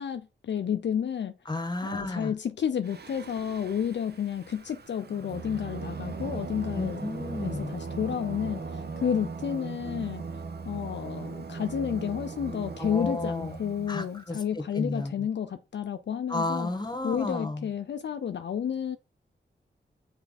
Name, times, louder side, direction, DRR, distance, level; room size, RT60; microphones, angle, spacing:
voice 1, 0.0-1.3 1.8-7.0 7.4-16.7 17.0-19.0, left 8 dB, 65° left, 0.4 m, -31 dB
voice 2, 1.5-2.3 6.7-7.7 12.8-13.6 13.9-15.1 16.3-17.7, left 2 dB, 20° left, 1.4 m, -32 dB
Singing, 2.8-14.2, right 4 dB, 55° right, 0.8 m, -38 dB
5.8 x 4.3 x 4.0 m
cardioid pair, 55°, 20 cm